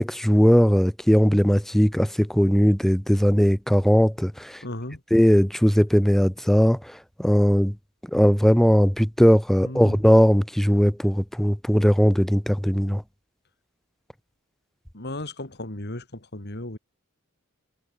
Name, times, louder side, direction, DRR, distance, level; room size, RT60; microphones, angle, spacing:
voice 1, 0.0-4.6 5.1-6.8 7.2-7.7 8.1-13.0, equal, ahead, 0.5 m, -19 dB
voice 2, 4.6-5.0 9.6-10.0 14.9-16.8, left 1 dB, 50° left, 3.6 m, -35 dB
head